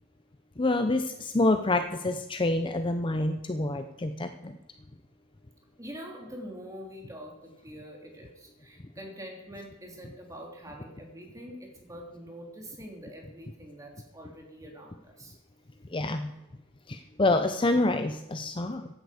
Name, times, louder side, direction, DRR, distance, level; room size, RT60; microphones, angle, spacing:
voice 1, 0.6-4.6 15.9-16.3 16.9-18.9, left 2 dB, 25° left, 8 dB, 0.6 m, -27 dB
voice 2, 5.8-15.4, equal, 15° right, 1 dB, 2.8 m, -45 dB
15.0 x 10.5 x 5.0 m, 0.97 s
head